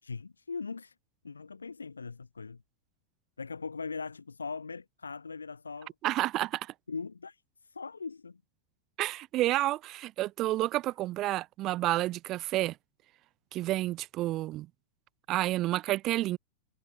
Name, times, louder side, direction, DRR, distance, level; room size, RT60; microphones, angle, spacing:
voice 1, 0.0-1.0 1.2-2.6 3.4-5.9 6.9-8.4, left 4 dB, 75° left, 2.0 m, -40 dB
voice 2, 6.0-6.7 9.0-12.7 13.5-14.7 15.3-16.4, right 16 dB, 35° right, 0.7 m, -30 dB
figure-of-eight pair, 90°, 0 cm